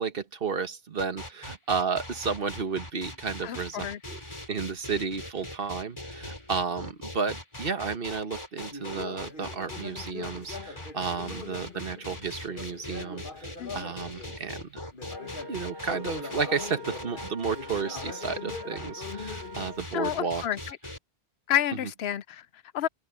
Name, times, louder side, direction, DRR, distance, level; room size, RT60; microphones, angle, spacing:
voice 1, 0.0-4.2 4.5-14.8 15.5-20.4, right 5 dB, 60° right, 1.4 m, -32 dB
sound 1, 1.0-21.0, left 1 dB, 25° left, 4.0 m, -41 dB
voice 2, 3.4-4.0 13.6-13.9 19.9-20.8 21.5-22.5 22.7-22.9, left 11 dB, 75° left, 0.8 m, -29 dB
Conversation, 8.7-14.4 14.9-19.8, left 4 dB, 55° left, 1.9 m, -42 dB
Wind instrument woodwind instrument, 15.0-19.9, equal, 25° right, 1.1 m, -45 dB
omnidirectional pair, 1.1 m